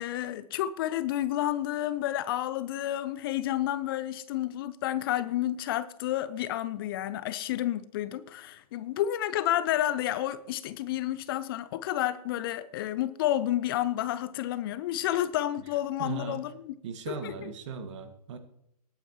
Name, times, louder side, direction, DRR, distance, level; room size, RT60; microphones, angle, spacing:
voice 1, 0.0-16.7 17.1-17.5, left 13 dB, 35° left, 0.6 m, -30 dB
voice 2, 16.0-16.4 16.8-18.4, right 5 dB, 45° right, 1.8 m, -38 dB
19.0 x 8.9 x 3.0 m
figure-of-eight pair, 120°, 20 cm